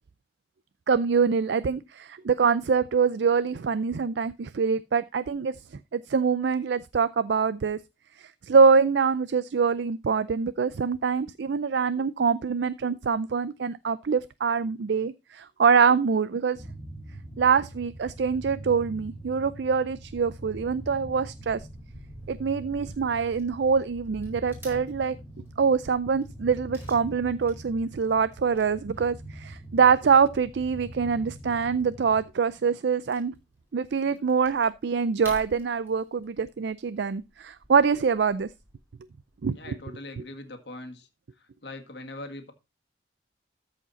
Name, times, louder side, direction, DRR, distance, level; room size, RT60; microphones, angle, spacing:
voice 1, 0.9-5.5 5.9-7.8 8.2-16.7 17.4-21.6 22.3-25.2 25.6-33.3 33.7-38.5 39.4-39.8 40.2-40.3, right 5 dB, 70° right, 0.4 m, -24 dB
sound 1, 16.5-32.3, right 1 dB, 10° left, 1.6 m, -43 dB
Wood / Tearing, 19.9-39.5, equal, 10° right, 4.7 m, -53 dB
voice 2, 39.5-41.1 41.6-42.5, left 2 dB, 65° left, 1.8 m, -41 dB
13.5 x 5.0 x 4.0 m
head